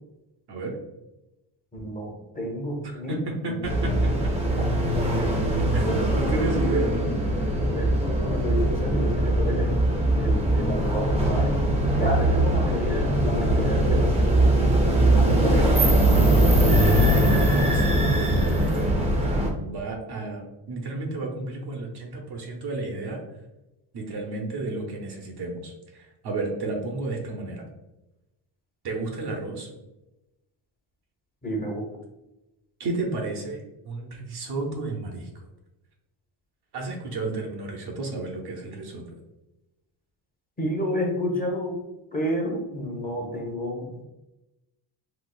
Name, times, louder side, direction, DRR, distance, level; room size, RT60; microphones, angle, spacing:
voice 1, 1.7-3.6 4.6-4.7 5.1-5.5 5.8-7.0 7.6-9.8 10.1-11.6 11.9-14.8 15.1-15.9 31.4-31.8 40.6-41.8 42.1-44.0, equal, 20° left, -1 dB, 0.9 m, -30 dB
voice 2, 2.8-4.3 5.7-7.1 7.5-7.6 15.4-15.7 16.8-23.2 23.9-27.7 28.8-29.7 32.8-35.4 36.7-39.0, right 2 dB, 50° right, 1 dB, 0.8 m, -32 dB
sound 1, 3.6-19.5, right 1 dB, 15° right, 0.7 m, -21 dB
4.1 x 2.3 x 2.3 m, 0.96 s
cardioid pair, 100°, 49 cm